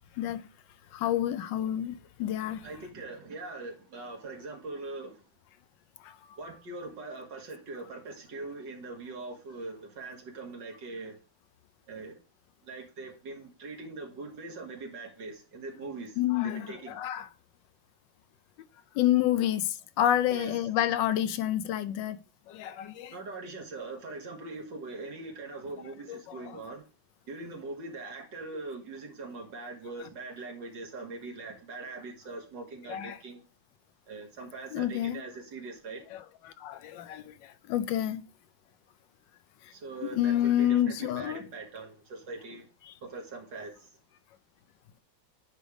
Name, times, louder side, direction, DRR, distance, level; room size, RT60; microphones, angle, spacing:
voice 1, 0.9-2.6 6.0-6.1 16.2-17.3 19.0-22.2 22.5-23.1 26.1-26.6 32.9-33.2 34.7-35.2 36.1-38.2 40.0-41.4 42.9-43.0, left 12 dB, 75° left, 1.2 m, -29 dB
voice 2, 2.6-5.2 6.4-11.2 11.9-12.2 12.6-16.2 16.4-17.0 20.3-20.7 23.1-26.8 27.3-33.4 34.1-36.0 39.7-42.7 43.0-43.9, right 3 dB, 65° right, 2.3 m, -42 dB
9.1 x 3.3 x 5.0 m
omnidirectional pair, 2.1 m